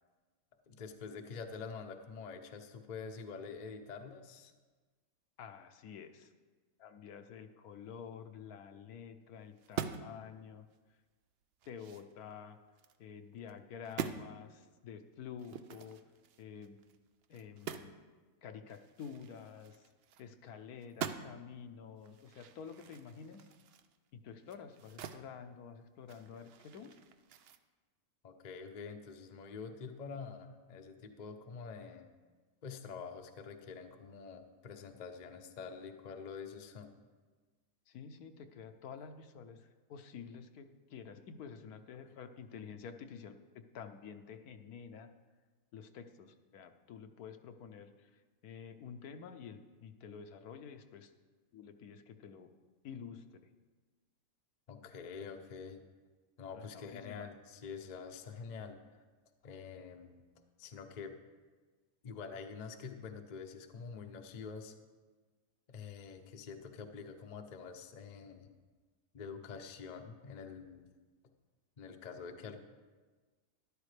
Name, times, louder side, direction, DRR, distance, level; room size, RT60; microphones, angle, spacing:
voice 1, 0.7-4.5 28.2-32.1 32.6-36.9 54.7-55.8 56.4-59.0 59.4-60.2 60.6-61.2 62.0-64.7 65.7-68.5 69.1-70.9 71.8-72.6, left 5 dB, 40° left, 6 dB, 0.6 m, -46 dB
voice 2, 5.4-6.3 6.8-11.0 11.7-12.6 13.0-16.0 16.4-16.8 17.3-17.9 18.4-19.9 20.2-23.5 24.1-27.0 37.9-45.1 45.7-51.1 51.5-52.5 52.8-53.5 56.5-57.3, left 7 dB, 75° left, 8 dB, 1.2 m, -49 dB
sound 1, 9.6-10.2 10.6-10.8 11.2-13.0 13.4-13.6 13.8-14.2 15.4-18.0 18.3-18.4 18.7-20.5 20.8-21.5 22.0-25.3 25.6-27.6, right 8 dB, 75° right, 0.5 m, -45 dB
13.0 x 11.5 x 3.3 m, 1.4 s
omnidirectional pair, 1.6 m